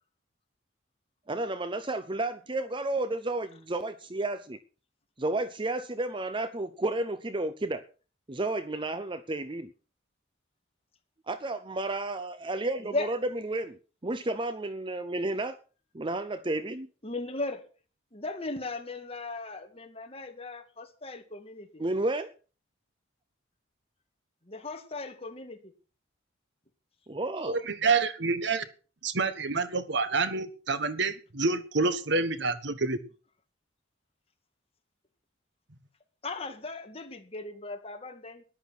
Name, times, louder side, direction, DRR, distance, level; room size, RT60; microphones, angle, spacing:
voice 1, 1.3-4.6 5.2-7.9 8.3-9.7 11.3-13.8 14.0-15.6 15.9-16.9 21.8-22.3 27.1-27.6, right 2 dB, 25° right, 0.7 m, -32 dB
voice 2, 17.0-17.6 18.1-21.7 24.5-25.6 36.2-38.4, left 3 dB, 30° left, 2.3 m, -37 dB
voice 3, 27.5-28.7 29.0-33.0, right 4 dB, 65° right, 1.4 m, -28 dB
13.5 x 11.0 x 6.1 m
head